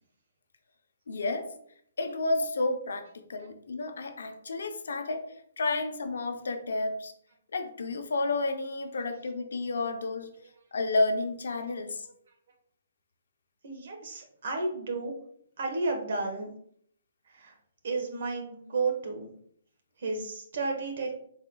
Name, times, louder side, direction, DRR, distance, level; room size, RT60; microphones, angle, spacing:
voice 1, 1.1-1.5 2.0-5.3 5.6-7.1 7.5-10.3 10.7-12.1, left 2 dB, 80° left, 6 dB, 0.6 m, -31 dB
voice 2, 13.6-15.1 15.6-16.5 17.3-17.5 17.8-19.3 20.0-21.2, right 3 dB, 60° right, 3 dB, 1.0 m, -32 dB
4.1 x 3.9 x 2.2 m, 0.65 s
hypercardioid pair, 160°, 0 cm